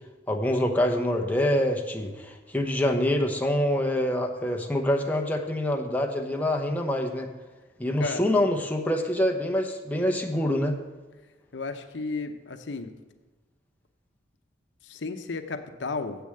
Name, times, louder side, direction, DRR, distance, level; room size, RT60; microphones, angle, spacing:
voice 1, 0.3-7.3 7.8-10.8, left 1 dB, 10° left, 1 dB, 0.8 m, -25 dB
voice 2, 11.5-12.9 14.8-16.2, left 3 dB, 75° left, 8 dB, 0.7 m, -33 dB
7.6 x 6.9 x 7.6 m, 1.2 s
head